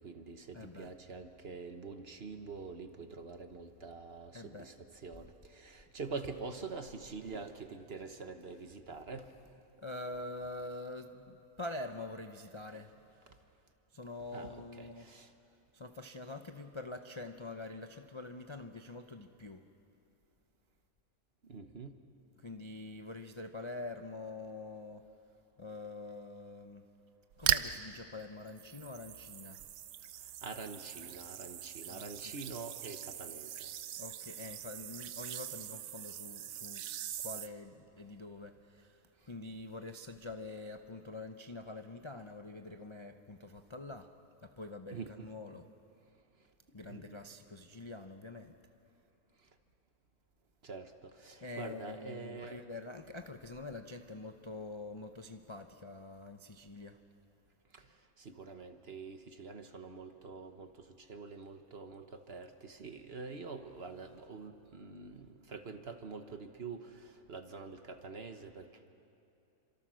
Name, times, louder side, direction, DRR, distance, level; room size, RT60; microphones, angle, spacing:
voice 1, 0.0-9.3 14.3-15.3 21.5-21.9 30.4-33.7 44.9-45.3 46.9-47.2 50.6-52.6 57.7-57.8 58.2-68.9, right 4 dB, 45° right, 7 dB, 1.3 m, -46 dB
voice 2, 0.5-0.9 4.3-4.7 5.2-5.3 9.8-13.0 13.9-15.1 15.7-19.6 22.4-25.1 25.6-26.8 27.4-29.7 31.9-32.1 34.0-36.8 37.2-44.1 44.4-45.6 46.7-48.5 51.4-57.0, left 2 dB, 30° left, 6 dB, 0.6 m, -45 dB
sound 1, 27.3-27.8 28.5-37.5, right 11 dB, 85° right, 1.3 m, -40 dB
29.0 x 26.5 x 6.3 m, 2.7 s
omnidirectional pair, 1.6 m